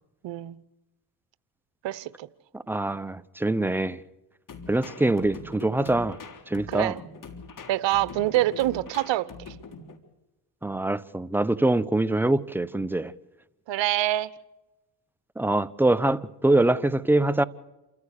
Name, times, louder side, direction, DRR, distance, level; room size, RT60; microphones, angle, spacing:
voice 1, 0.2-0.6 1.8-2.3 6.7-7.0 7.7-9.5 13.7-14.3, right 15 dB, 65° right, 1.1 m, -26 dB
voice 2, 2.5-4.0 4.7-6.2 6.5-6.9 10.6-13.1 15.4-17.4, right 2 dB, 5° right, 0.9 m, -24 dB
sound 1, 4.5-10.0, left 4 dB, 40° left, 3.6 m, -43 dB
28.5 x 14.5 x 6.7 m
supercardioid pair, 70°, 48 cm